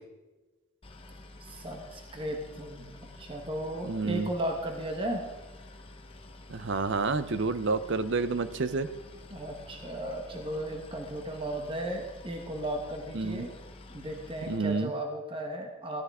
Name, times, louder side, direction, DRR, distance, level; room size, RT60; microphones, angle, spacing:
Boat Water vehicle, 0.8-14.6, left 2 dB, 25° left, 0.9 m, -49 dB
voice 1, 1.4-5.2 9.3-13.5 13.9-16.0, right 1 dB, 25° right, 3 dB, 1.1 m, -35 dB
voice 2, 3.8-4.3 6.5-8.9 13.1-13.5 14.5-14.9, right 4 dB, 55° right, 13 dB, 0.6 m, -29 dB
15.0 x 13.0 x 3.6 m, 1.2 s
head